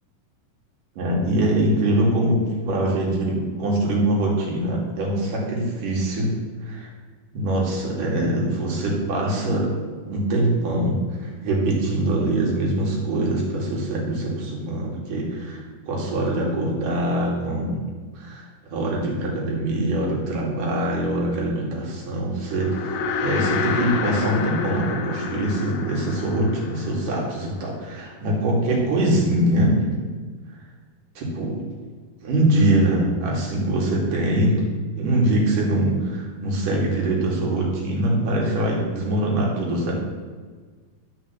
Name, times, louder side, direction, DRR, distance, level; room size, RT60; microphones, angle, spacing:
voice 1, 1.0-6.4 6.6-6.9 7.3-9.7 10.1-17.8 18.2-18.4 18.7-29.8 31.2-31.6 32.2-34.6 35.0-39.9, right 1 dB, 75° right, -2 dB, 4.0 m, -23 dB
sound 1, 22.5-27.9, left 5 dB, 70° left, 1.6 m, -28 dB
12.0 x 5.9 x 6.9 m, 1.5 s
omnidirectional pair, 3.7 m